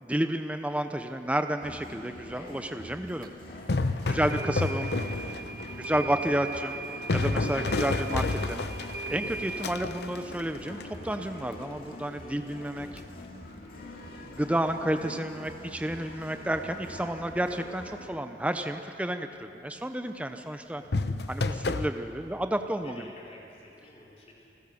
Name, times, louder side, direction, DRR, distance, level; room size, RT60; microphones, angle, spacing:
voice 1, 0.0-3.3 4.1-4.9 5.8-6.8 7.1-8.6 9.1-12.9 14.4-20.8 21.3-23.0, right 1 dB, 10° right, 7 dB, 0.6 m, -31 dB
sound 1, 1.6-18.1, left 1 dB, 50° left, 2.5 m, -45 dB
sound 2, 3.2-3.3 4.3-9.6, right 4 dB, 50° right, 1.5 m, -38 dB
sound 3, 3.5-5.7 6.2-11.2 13.0-13.2 20.9-21.9, left 3 dB, 70° left, 0.8 m, -30 dB
voice 2, 4.0-4.4 14.0-14.4 22.8-24.5, left 1 dB, 35° left, -3 dB, 4.0 m, -50 dB
28.0 x 15.5 x 7.0 m, 2.7 s
head